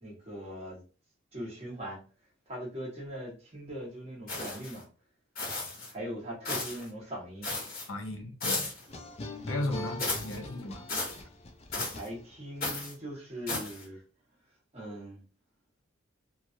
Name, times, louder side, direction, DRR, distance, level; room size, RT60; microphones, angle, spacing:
voice 1, 0.0-0.8 1.3-2.0 2.5-4.9 5.9-7.5 11.8-14.0 14.7-15.2, equal, 30° right, 1.3 m, -40 dB
sound 1, 4.3-4.8 5.3-5.9 6.4-6.9 7.4-7.9 8.4-8.9 10.0-10.4 10.9-11.2 11.7-12.1 12.6-12.9 13.5-13.8, left 2 dB, 45° left, 1.3 m, -34 dB
voice 2, 7.9-8.7 9.5-10.8, left 1 dB, 65° left, 0.7 m, -35 dB
sound 2, 8.9-12.6, left 2 dB, 30° left, 0.4 m, -42 dB
3.0 x 2.5 x 2.5 m
head